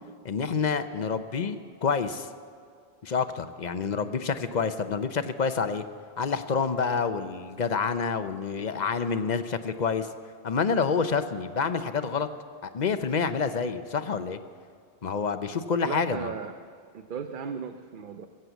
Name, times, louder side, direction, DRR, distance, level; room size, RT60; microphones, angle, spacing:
voice 1, 0.2-2.3 3.0-5.8 6.2-10.1 10.4-12.3 12.6-14.4 15.0-16.3, left 5 dB, 50° left, 10 dB, 0.8 m, -28 dB
voice 2, 15.8-16.5 16.9-18.3, right 6 dB, 55° right, 7 dB, 0.8 m, -36 dB
21.5 x 7.8 x 8.0 m, 2.2 s
omnidirectional pair, 1.1 m